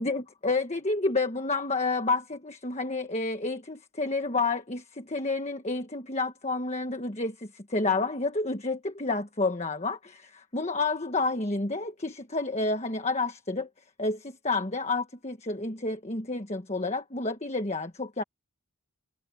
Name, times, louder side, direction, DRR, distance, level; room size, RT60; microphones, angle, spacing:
voice 1, 0.0-13.7 14.0-18.2, left 3 dB, 30° left, 1.4 m, -30 dB
head